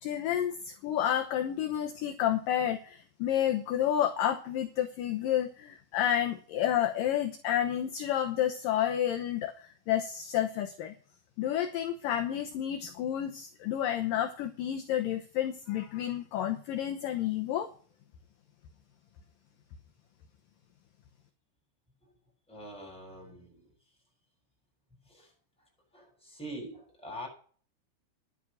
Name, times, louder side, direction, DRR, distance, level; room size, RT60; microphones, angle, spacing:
voice 1, 0.0-10.9 11.4-17.7, left 11 dB, 70° left, 2.3 m, -30 dB
voice 2, 22.5-23.7 25.1-25.3 25.9-27.3, equal, ahead, 7.3 m, -44 dB
11.5 x 9.6 x 6.4 m
omnidirectional pair, 4.9 m